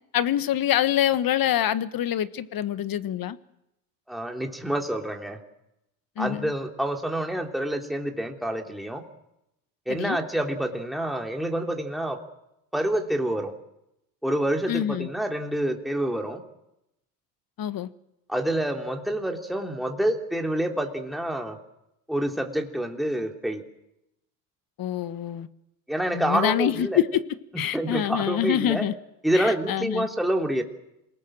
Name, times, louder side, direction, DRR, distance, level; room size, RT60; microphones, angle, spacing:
voice 1, 0.1-3.4 6.2-6.5 9.9-10.2 14.7-15.1 17.6-17.9 24.8-25.5 26.1-27.2 27.6-28.9 29.3-30.1, left 11 dB, 45° left, 1.4 m, -25 dB
voice 2, 4.1-5.4 6.2-9.0 9.9-12.2 12.7-13.5 14.2-16.4 18.3-21.6 22.1-23.6 25.9-27.0 27.5-28.8 29.2-30.6, right 1 dB, ahead, 3.1 m, -27 dB
27.5 x 19.0 x 7.6 m
hypercardioid pair, 70°, 49 cm